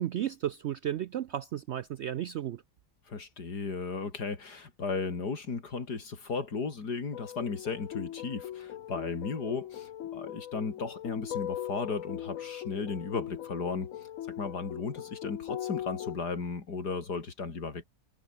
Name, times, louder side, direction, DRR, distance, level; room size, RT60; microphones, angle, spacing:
voice 1, 0.0-2.6, right 11 dB, 75° right, 0.6 m, -33 dB
voice 2, 3.1-13.9 14.3-17.8, left 4 dB, 90° left, 3.6 m, -35 dB
sound 1, 7.1-16.2, left 11 dB, 60° left, 1.0 m, -39 dB
omnidirectional pair, 1.7 m